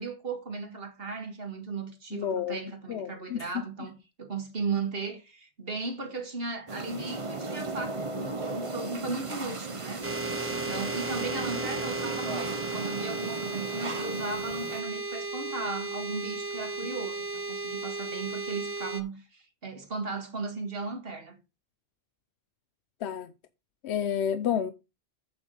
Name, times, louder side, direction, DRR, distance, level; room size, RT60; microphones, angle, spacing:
voice 1, 0.0-10.1 10.5-21.4, right 4 dB, 60° right, 2.1 m, -36 dB
voice 2, 2.1-2.6 2.9-3.5 23.0-23.3 23.8-24.7, left 8 dB, 85° left, 0.9 m, -30 dB
sound 1, 6.7-14.8, right 3 dB, 30° right, 1.0 m, -36 dB
sound 2, 10.0-19.0, right 3 dB, 15° right, 0.5 m, -34 dB
8.5 x 7.1 x 3.9 m
omnidirectional pair, 1.1 m